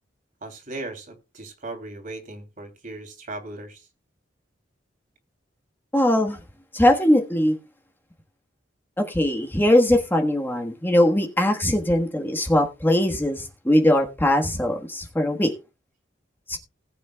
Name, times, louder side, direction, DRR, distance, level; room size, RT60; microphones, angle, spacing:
voice 1, 0.4-3.8, right 2 dB, 45° right, 3.0 m, -37 dB
voice 2, 5.9-6.4 6.7-7.5 9.0-15.5 16.5-16.6, left 1 dB, 10° left, 1.4 m, -20 dB
19.5 x 8.3 x 2.3 m
head